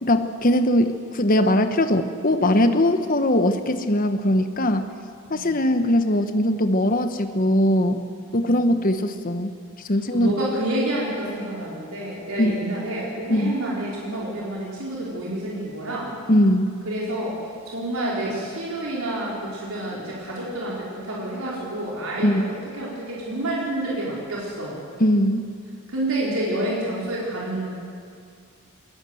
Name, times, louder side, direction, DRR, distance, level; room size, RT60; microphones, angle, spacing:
voice 1, 0.0-4.9 5.3-8.0 8.3-9.5 9.9-10.3 12.4-12.5 13.3-13.5 16.3-16.8 22.2-22.5 25.0-25.5, left 1 dB, 40° left, 8 dB, 1.2 m, -20 dB
voice 2, 10.1-16.1 16.8-17.4 17.7-24.8 25.9-27.7, right 1 dB, 85° right, -5 dB, 4.6 m, -28 dB
20.5 x 20.0 x 7.9 m, 2.2 s
head